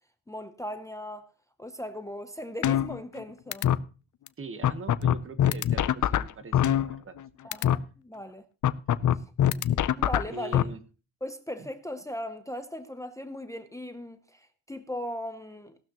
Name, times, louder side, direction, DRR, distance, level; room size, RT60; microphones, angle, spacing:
voice 1, 0.3-1.3 1.6-3.7 7.4-8.4 9.1-9.2 10.0-10.6 11.2-15.8, left 1 dB, 10° left, 0.7 m, -38 dB
sound 1, 2.6-3.2 3.5-3.8 4.3-4.4 4.6-7.2 7.5-7.8 8.6-10.6, left 11 dB, 50° left, 0.5 m, -23 dB
voice 2, 4.4-7.1 7.4-7.5 10.3-10.8 11.6-11.7, right 3 dB, 35° right, 1.3 m, -42 dB
16.5 x 12.5 x 3.0 m
wide cardioid pair, 170°, 39 cm